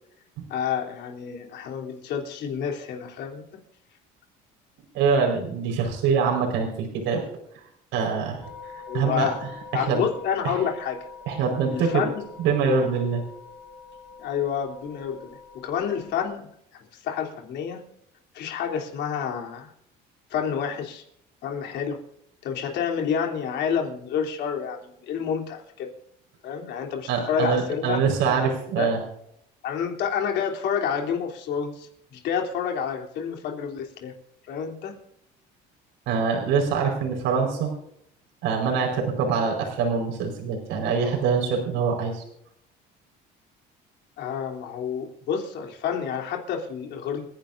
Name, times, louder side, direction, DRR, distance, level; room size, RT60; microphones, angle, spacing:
voice 1, 0.5-3.4 8.9-9.4 9.7-11.1 11.7-12.3 12.8-12.9 14.2-16.5 16.9-17.8 18.3-19.7 20.3-21.0 21.4-22.0 22.4-25.9 26.4-28.0 28.7-29.0 29.6-34.1 34.5-34.9 44.2-47.3, left 7 dB, 60° left, 1 dB, 3.4 m, -29 dB
voice 2, 4.9-7.2 7.9-8.4 8.9-9.3 9.7-10.0 10.4-10.6 11.3-12.0 12.4-13.2 27.1-29.0 36.1-37.7 38.4-42.2, right 5 dB, 80° right, 1 dB, 4.8 m, -24 dB
sound 1, 8.4-16.3, left 5 dB, ahead, 5.3 m, -44 dB
30.0 x 10.5 x 2.7 m, 0.75 s
cardioid pair, 140°, 19 cm